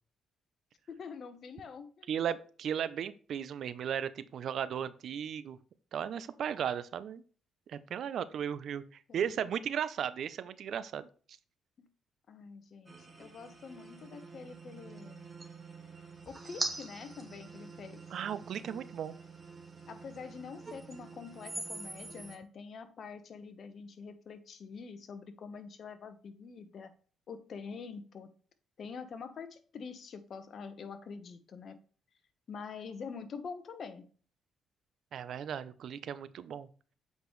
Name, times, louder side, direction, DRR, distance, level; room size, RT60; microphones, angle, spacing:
voice 1, 0.9-2.1 9.1-9.3 11.8-11.9 12.3-15.3 16.3-18.0 19.9-26.9 27.3-28.3 28.8-31.8 32.5-34.0, left 5 dB, 55° left, 1.1 m, -46 dB
voice 2, 2.1-5.6 5.9-7.2 7.7-8.8 9.1-11.1 18.1-19.1 35.1-36.7, right 8 dB, 65° right, 0.6 m, -36 dB
sound 1, 12.9-22.4, right 3 dB, 25° right, 1.6 m, -44 dB
8.0 x 5.2 x 3.2 m
cardioid pair, 90°, 0 cm